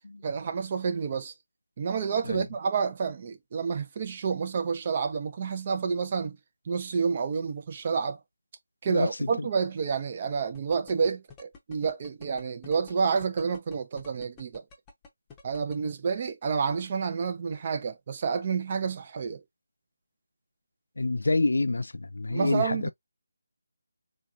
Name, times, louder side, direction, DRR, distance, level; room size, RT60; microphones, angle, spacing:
voice 1, 0.2-1.3 1.8-6.4 6.7-8.2 8.8-14.6 15.4-19.4 22.3-22.9, right 5 dB, 30° right, 0.6 m, -29 dB
voice 2, 8.9-9.5 21.0-22.9, left 2 dB, 80° left, 0.4 m, -27 dB
sound 1, 10.5-15.8, left 4 dB, 10° left, 0.8 m, -49 dB
3.7 x 2.9 x 2.4 m
figure-of-eight pair, 170°, 0 cm